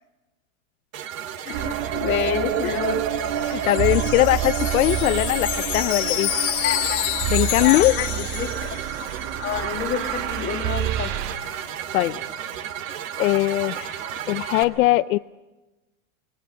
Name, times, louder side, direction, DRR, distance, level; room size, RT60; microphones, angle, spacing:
sound 1, 0.9-14.6, right 10 dB, 70° right, 2.6 m, -34 dB
voice 1, 1.5-3.0 6.6-7.0 7.6-8.7 9.4-11.1, left 7 dB, 25° left, 4 dB, 2.4 m, -28 dB
sound 2, 1.5-11.4, right 10 dB, 45° right, 1.8 m, -28 dB
Wind chime, 3.1-9.1, left 15 dB, 90° left, 1.7 m, -28 dB
voice 2, 3.5-6.3 7.3-8.0 11.4-11.5 11.9-12.2 13.2-15.2, left 17 dB, 75° left, 12 dB, 0.7 m, -21 dB
28.5 x 23.5 x 6.6 m, 1.1 s
supercardioid pair, 165°, 42 cm